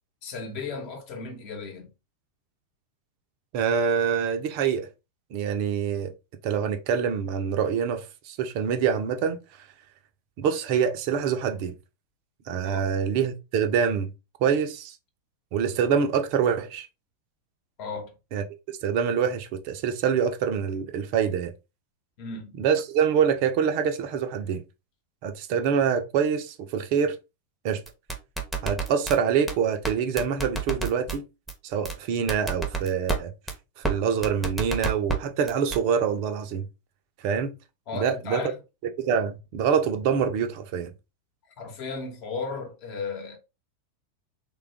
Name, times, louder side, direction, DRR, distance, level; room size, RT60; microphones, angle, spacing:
voice 1, 0.2-1.9 12.6-12.9 17.8-18.1 22.2-22.6 37.9-38.6 41.6-43.4, left 4 dB, 45° left, 1.0 m, -35 dB
voice 2, 3.5-4.9 5.3-6.1 6.4-9.4 10.4-11.7 12.5-14.1 14.4-15.0 15.5-16.9 18.3-18.4 18.8-21.5 22.6-24.6 25.2-27.2 27.6-27.8 28.6-31.3 31.6-33.3 33.8-36.7 37.2-37.6 37.9-38.4 39.0-40.9, right 7 dB, 45° right, 0.5 m, -25 dB
sound 1, 27.9-29.2 29.5-29.6 29.8-29.9 30.2-31.2 31.5-31.6 31.9-32.0 32.3-33.2 33.5-33.6 33.8-33.9 34.2-35.2 35.5-35.8, right 4 dB, ahead, 0.8 m, -28 dB
3.3 x 2.3 x 3.4 m
figure-of-eight pair, 90°, 0 cm